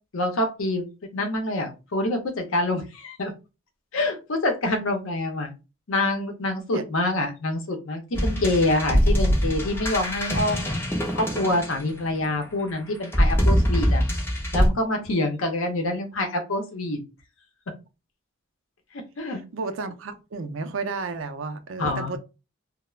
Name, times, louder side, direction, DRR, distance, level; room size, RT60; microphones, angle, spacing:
voice 1, 0.1-0.9 1.1-3.3 3.9-5.5 5.9-10.8 11.1-14.0 14.5-17.0 19.2-19.4 21.8-22.2, left 2 dB, 75° left, 0.6 m, -26 dB
sound 1, 8.1-12.2 13.0-14.7, equal, 10° left, 0.4 m, -23 dB
voice 2, 19.5-22.2, right 4 dB, 70° right, 0.4 m, -32 dB
2.3 x 2.0 x 3.0 m
head